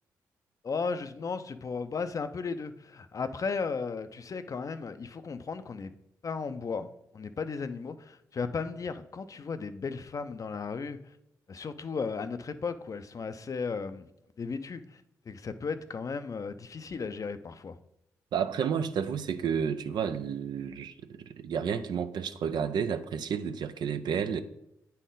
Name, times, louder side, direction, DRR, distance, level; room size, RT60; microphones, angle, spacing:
voice 1, 0.6-5.9 6.2-11.2 11.5-14.1 14.4-17.8, left 5 dB, 45° left, 0.6 m, -35 dB
voice 2, 18.3-24.4, right 7 dB, 70° right, 0.5 m, -31 dB
8.9 x 4.2 x 3.9 m
hypercardioid pair, 45°, 8 cm